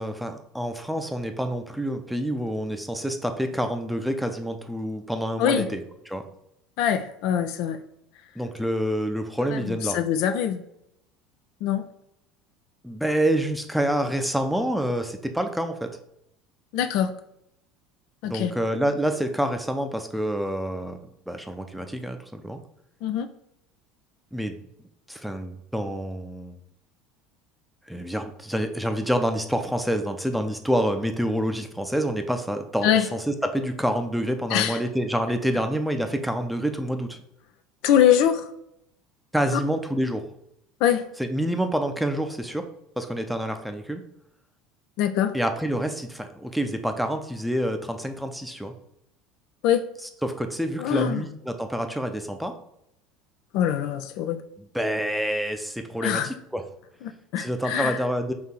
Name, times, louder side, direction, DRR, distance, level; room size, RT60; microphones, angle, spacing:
voice 1, 0.0-5.8 6.1-6.2 8.4-10.0 12.8-15.9 18.2-22.6 24.3-24.6 25.1-26.6 27.9-37.2 39.3-40.2 41.2-42.6 43.0-44.0 45.3-48.7 50.2-52.5 54.7-56.6 57.4-58.3, equal, ahead, 6 dB, 0.6 m, -27 dB
voice 2, 5.4-5.7 6.8-7.8 9.5-10.6 11.6-11.9 16.7-17.1 18.2-18.5 23.0-23.3 32.8-33.1 34.5-34.8 37.8-38.5 39.5-39.6 40.8-41.1 45.0-45.3 49.6-49.9 50.8-51.2 53.5-54.4 56.0-56.3 57.0-58.0, left 10 dB, 60° left, 9 dB, 0.3 m, -23 dB
4.4 x 2.7 x 3.8 m, 0.78 s
figure-of-eight pair, 70°, 0 cm